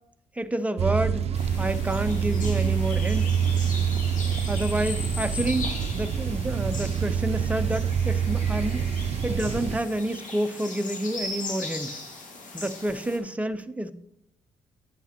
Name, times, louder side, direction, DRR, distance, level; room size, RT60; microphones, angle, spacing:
voice 1, 0.4-1.2 1.6-3.3 4.5-8.9 9.2-12.0 12.5-13.9, right 1 dB, 10° right, 9 dB, 0.8 m, -29 dB
sound 1, 0.8-9.8, right 7 dB, 50° right, 0.6 m, -26 dB
sound 2, 1.3-13.2, left 3 dB, 65° left, 2.0 m, -39 dB
11.0 x 8.0 x 3.0 m, 0.75 s
hypercardioid pair, 45°, 14 cm